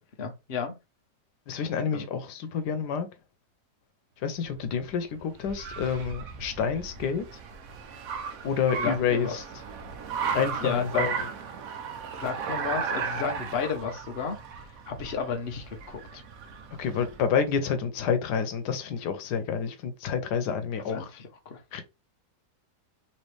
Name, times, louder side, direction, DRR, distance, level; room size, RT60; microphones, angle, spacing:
voice 1, 0.2-0.8 1.9-2.0 8.8-9.4 10.6-11.1 12.2-16.2 20.9-21.6, left 6 dB, 45° left, 1.0 m, -33 dB
voice 2, 1.5-3.1 4.2-7.2 8.4-9.4 10.3-11.1 16.8-21.1 21.7-21.8, left 6 dB, 90° left, 1.3 m, -28 dB
Car, 4.4-17.3, right 6 dB, 65° right, 1.1 m, -36 dB
4.2 x 2.9 x 3.2 m
omnidirectional pair, 1.7 m